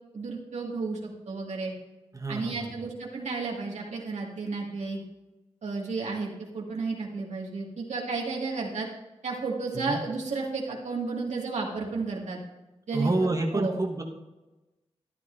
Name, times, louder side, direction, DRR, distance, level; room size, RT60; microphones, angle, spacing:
voice 1, 0.1-1.7 2.3-5.0 5.6-8.9 9.2-12.4 12.9-13.1 13.5-13.8, right 4 dB, 90° right, -2 dB, 1.9 m, -32 dB
voice 2, 2.1-2.7 9.7-10.0 12.9-14.0, right 2 dB, 30° right, 1 dB, 1.2 m, -28 dB
13.5 x 10.5 x 2.6 m, 1.1 s
wide cardioid pair, 70°, 11 cm